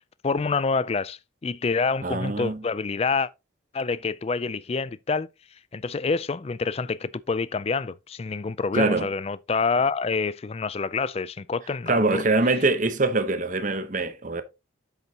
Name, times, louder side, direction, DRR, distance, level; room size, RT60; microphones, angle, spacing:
voice 1, 0.2-3.3 3.7-5.3 5.7-12.2, left 4 dB, 30° left, 0.4 m, -27 dB
voice 2, 2.0-2.6 8.7-9.1 11.9-14.4, right 3 dB, 40° right, 0.9 m, -24 dB
8.2 x 7.0 x 2.8 m
head